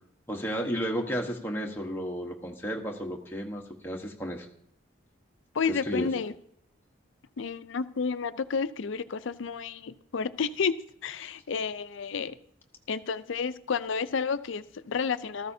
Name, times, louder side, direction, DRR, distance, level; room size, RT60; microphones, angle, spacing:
voice 1, 0.3-4.5 5.7-6.1, equal, 10° left, 1.1 m, -33 dB
voice 2, 5.5-6.3 7.4-12.4 12.9-15.5, left 5 dB, 75° left, 0.5 m, -31 dB
14.5 x 13.5 x 2.7 m
head